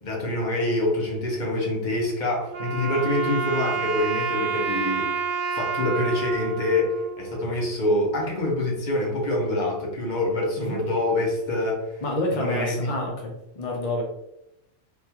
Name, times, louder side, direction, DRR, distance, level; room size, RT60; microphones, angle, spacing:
voice 1, 0.0-5.1 5.5-12.0 12.3-12.9, left 1 dB, 40° left, -1 dB, 0.8 m, -26 dB
Wind instrument woodwind instrument, 2.5-7.7, right 5 dB, 65° right, 0.5 m, -29 dB
voice 2, 12.0-14.0, left 1 dB, 65° left, 0 dB, 0.3 m, -28 dB
3.6 x 2.4 x 2.8 m, 0.86 s
omnidirectional pair, 1.4 m